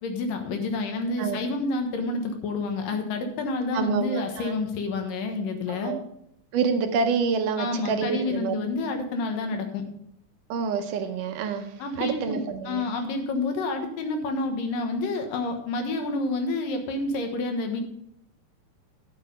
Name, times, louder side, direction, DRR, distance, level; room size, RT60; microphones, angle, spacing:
voice 1, 0.0-6.0 7.6-9.8 11.8-12.4 12.7-17.8, left 3 dB, 75° left, 5 dB, 3.0 m, -29 dB
voice 2, 3.7-4.5 5.7-6.0 6.5-8.6 10.5-12.8, right 5 dB, 75° right, 7 dB, 2.3 m, -27 dB
12.0 x 6.7 x 5.3 m, 0.73 s
omnidirectional pair, 4.0 m